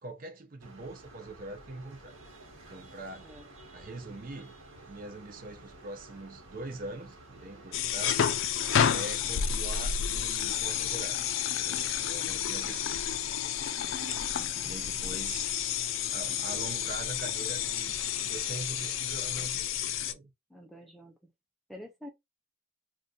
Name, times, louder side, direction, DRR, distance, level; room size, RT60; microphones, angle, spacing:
voice 1, 0.0-2.2 2.7-3.3 3.7-4.5 4.9-8.3 8.8-11.2 11.5-13.1 14.6-15.5 16.1-17.9 18.2-20.3, right 2 dB, 45° right, 0.5 m, -43 dB
sound 1, 0.6-19.5, right 2 dB, 80° right, 1.3 m, -52 dB
voice 2, 3.1-3.5 14.4-14.8 20.5-21.1 21.7-22.1, equal, ahead, 0.5 m, -48 dB
sound 2, 7.7-20.1, left 9 dB, 75° left, 0.4 m, -30 dB
2.7 x 2.4 x 3.6 m
head